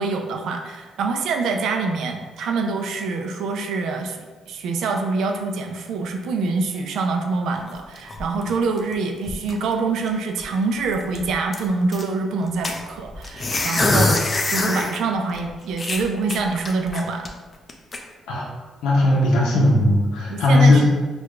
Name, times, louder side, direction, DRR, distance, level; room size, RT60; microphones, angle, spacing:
voice 1, 0.0-4.2 4.5-17.3 20.3-20.9, right 4 dB, 75° right, 4 dB, 0.4 m, -25 dB
sound 1, 7.6-8.9 9.2-9.7 10.1-10.2 10.4-10.6 10.9-12.0 12.6-15.0 15.3-15.4 15.8-17.3 17.7-18.0, left 2 dB, 30° left, 0.4 m, -24 dB
voice 2, 18.8-20.9, left 1 dB, 85° left, -4 dB, 0.6 m, -17 dB
4.5 x 2.3 x 2.3 m, 1.3 s
cardioid pair, 90°, 0 cm